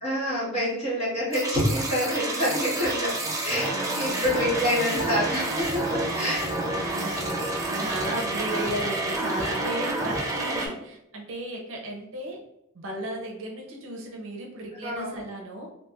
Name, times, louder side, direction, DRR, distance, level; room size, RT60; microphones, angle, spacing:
voice 1, 0.0-3.1 3.4-6.5 10.3-10.7 14.8-15.2, equal, 30° left, -7 dB, 1.1 m, -27 dB
sound 1, 1.3-10.7, right 2 dB, 15° right, 0.4 m, -29 dB
voice 2, 3.7-4.7 6.7-12.4 12.7-15.7, right 1 dB, 60° right, 0 dB, 0.6 m, -35 dB
sound 2, 4.9-6.4, equal, 65° left, 0.5 m, -43 dB
3.0 x 2.6 x 2.3 m, 0.82 s
head